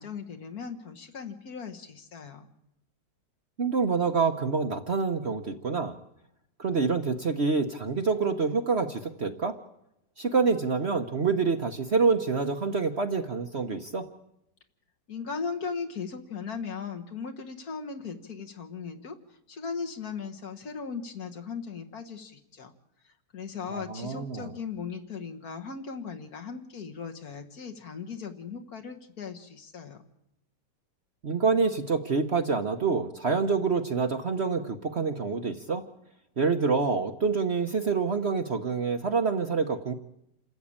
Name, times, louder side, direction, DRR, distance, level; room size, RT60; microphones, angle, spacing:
voice 1, 0.0-2.5 15.1-19.2 19.5-22.7 23.3-30.0, left 5 dB, 55° left, 4 dB, 2.0 m, -38 dB
voice 2, 3.6-5.9 6.6-9.6 10.2-14.1 23.7-24.5 31.2-35.8 36.4-39.9, right 4 dB, 45° right, 6 dB, 1.1 m, -27 dB
28.0 x 14.0 x 8.8 m, 0.83 s
omnidirectional pair, 1.9 m